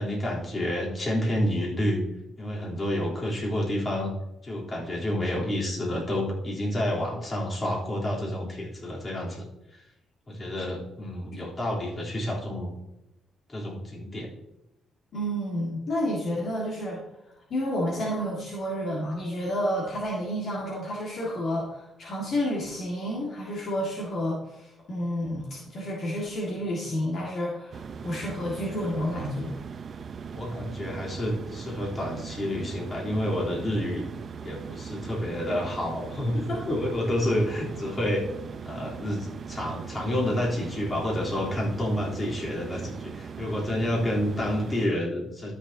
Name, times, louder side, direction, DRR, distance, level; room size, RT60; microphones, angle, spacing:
voice 1, 0.0-2.0 2.4-4.1 4.4-9.5 9.7-9.8 10.3-12.7 13.5-14.3 30.3-34.1 34.4-38.2 38.6-45.5, left 1 dB, 35° left, -4 dB, 3.4 m, -29 dB
voice 2, 15.1-17.0 17.5-29.6 35.5-35.6 36.5-36.7, equal, 55° left, -3 dB, 1.9 m, -30 dB
sound 1, 27.7-44.9, right 6 dB, 50° right, 0.6 m, -40 dB
12.5 x 6.8 x 2.8 m, 0.89 s
cardioid pair, 90°, 0 cm